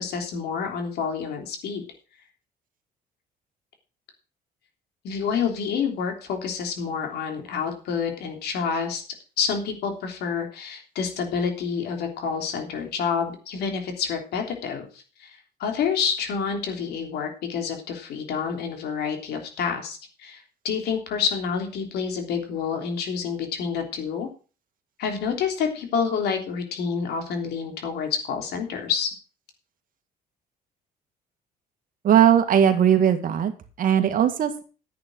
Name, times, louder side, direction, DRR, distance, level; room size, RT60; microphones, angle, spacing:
voice 1, 0.0-1.8 5.0-9.0 9.4-24.3 25.0-29.1, left 6 dB, 75° left, 4 dB, 3.4 m, -28 dB
voice 2, 32.0-33.5 33.8-34.6, right 9 dB, 55° right, 8 dB, 2.0 m, -19 dB
10.5 x 8.7 x 6.2 m, 0.36 s
cardioid pair, 110°, 17 cm